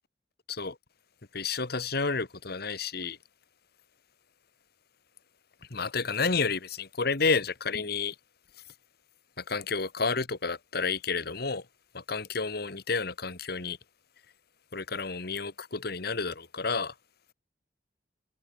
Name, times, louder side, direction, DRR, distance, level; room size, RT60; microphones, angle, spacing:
voice 1, 1.3-3.2 5.7-8.1 9.4-11.6 11.9-13.8 14.7-16.9, left 4 dB, 60° left, 1.6 m, -30 dB
head